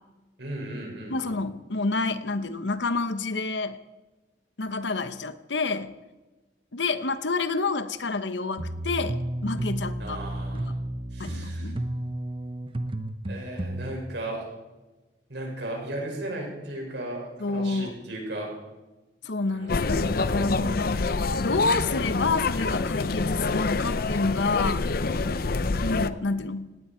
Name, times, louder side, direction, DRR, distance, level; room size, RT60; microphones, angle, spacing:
voice 1, 0.4-1.3 10.0-10.7 11.1-11.7 13.3-14.5 15.3-18.5 19.5-20.2, right 1 dB, 75° right, -1 dB, 6.2 m, -36 dB
voice 2, 1.1-3.8 4.6-5.9 6.7-10.2 10.6-10.7 11.2-11.8 17.4-18.0 19.2-24.9 25.8-26.7, left 3 dB, 85° left, 12 dB, 1.0 m, -28 dB
sound 1, 8.6-13.9, right 1 dB, 30° right, 1.0 m, -32 dB
sound 2, 19.7-26.1, left 3 dB, 55° left, 0.6 m, -27 dB
18.5 x 17.5 x 4.5 m, 1.1 s
head